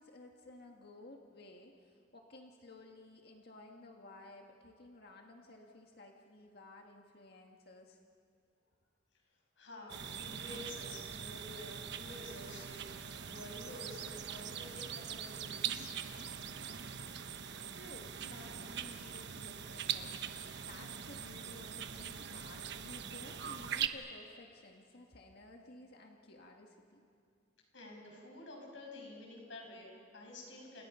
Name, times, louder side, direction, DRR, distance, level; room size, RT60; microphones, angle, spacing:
voice 1, 0.0-8.0 17.7-27.1, left 2 dB, 60° left, 2 dB, 1.8 m, -55 dB
voice 2, 9.6-15.6 27.7-30.8, left 1 dB, 80° left, 0 dB, 6.8 m, -50 dB
sound 1, 9.9-23.9, right 8 dB, 65° right, 1.1 m, -42 dB
30.0 x 28.5 x 5.7 m, 2.3 s
head